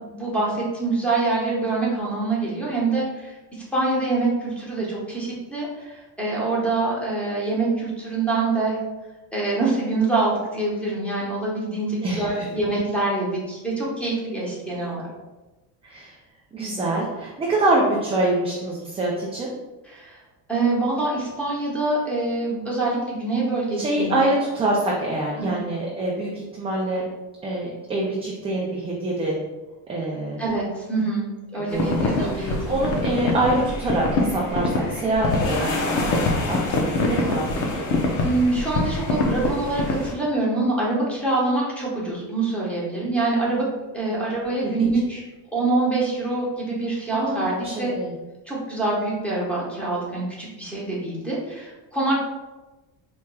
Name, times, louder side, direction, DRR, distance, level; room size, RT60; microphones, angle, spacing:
voice 1, 0.1-3.3 3.7-8.8 9.3-15.1 19.9-20.2 20.5-24.4 25.4-25.7 30.4-31.3 31.5-32.7 38.2-43.7 43.9-45.2 45.5-47.9 48.5-52.2, right 2 dB, 5° left, -6 dB, 1.0 m, -25 dB
voice 2, 12.0-12.5 15.8-16.2 16.5-19.5 23.8-27.0 27.4-29.4 29.9-30.4 31.5-37.9 44.1-44.2 44.6-44.9 47.1-48.1, right 2 dB, 15° right, -4 dB, 0.3 m, -25 dB
sound 1, 31.7-40.1, left 2 dB, 85° left, 0.8 m, -24 dB
4.6 x 3.0 x 2.2 m, 1.1 s
cardioid pair, 140°, 40 cm